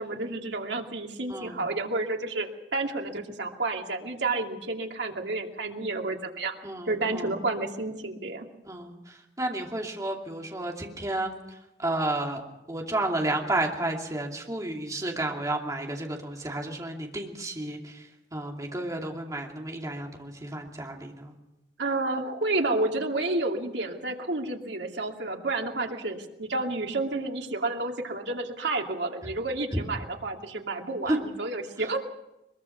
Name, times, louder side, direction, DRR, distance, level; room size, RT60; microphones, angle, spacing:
voice 1, 0.0-6.6 6.9-8.5 21.8-32.0, right 2 dB, 90° right, 2 dB, 2.5 m, -30 dB
voice 2, 1.3-1.6 6.6-7.3 8.7-8.9 9.4-11.3 11.8-12.4 12.7-17.9 18.3-21.3 29.7-29.8 31.1-31.2, right 1 dB, 20° right, 1 dB, 2.7 m, -31 dB
22.5 x 22.0 x 5.9 m, 0.95 s
head